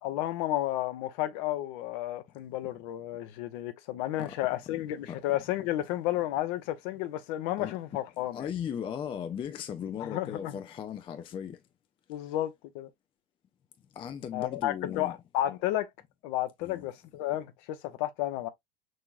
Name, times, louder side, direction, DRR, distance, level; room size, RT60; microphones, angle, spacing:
voice 1, 0.0-8.5 10.0-10.6 12.1-12.9 14.3-15.9 16.2-18.5, left 14 dB, 50° left, 0.8 m, -32 dB
voice 2, 8.3-11.6 14.0-15.2 16.6-16.9, left 8 dB, 15° left, 0.4 m, -37 dB
6.3 x 2.9 x 2.4 m
figure-of-eight pair, 75°, 31 cm